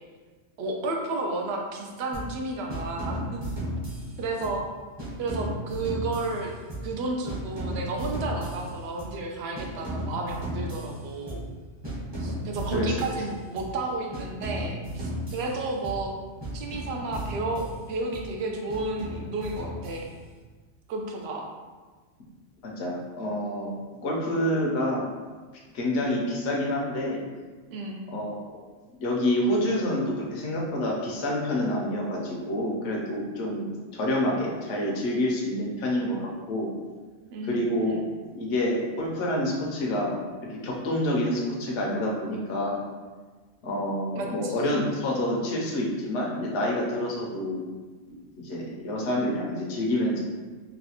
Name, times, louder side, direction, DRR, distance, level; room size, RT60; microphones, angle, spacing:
voice 1, 0.6-3.4 4.2-4.6 5.2-6.5 6.8-11.4 12.2-16.1 16.5-20.1 20.9-21.5 27.7-28.1 37.3-38.0 44.2-44.7, right 2 dB, 65° right, 1 dB, 0.8 m, -32 dB
sound 1, 2.1-2.4 2.7-4.6 5.0-7.0 7.3-9.2 9.5-11.6 11.8-13.8 14.1-16.1 16.4-18.3 18.7-20.4, equal, 25° right, 0.7 m, -35 dB
voice 2, 22.6-25.1 25.7-27.2 28.1-28.4 29.0-36.7 37.4-38.0 38.3-40.2 40.5-42.8 43.6-47.6 48.4-50.2, left 1 dB, 70° left, -3 dB, 1.0 m, -28 dB
3.9 x 2.2 x 2.8 m, 1.4 s
omnidirectional pair, 1.3 m